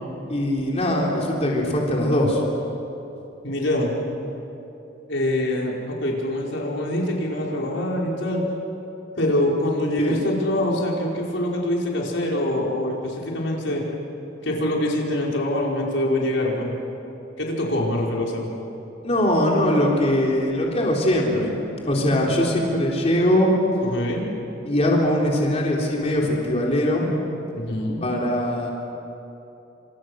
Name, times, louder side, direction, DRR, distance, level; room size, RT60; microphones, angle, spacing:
voice 1, 0.3-2.4 10.0-10.2 19.0-21.5 21.9-23.5 24.6-27.1 28.0-28.7, left 1 dB, 35° left, -2 dB, 3.7 m, -21 dB
voice 2, 3.4-3.9 5.1-8.4 9.2-13.8 14.4-16.7 17.4-18.4 23.8-24.3 27.5-28.1, left 1 dB, 90° left, -2 dB, 5.1 m, -24 dB
29.0 x 27.5 x 6.5 m, 3.0 s
head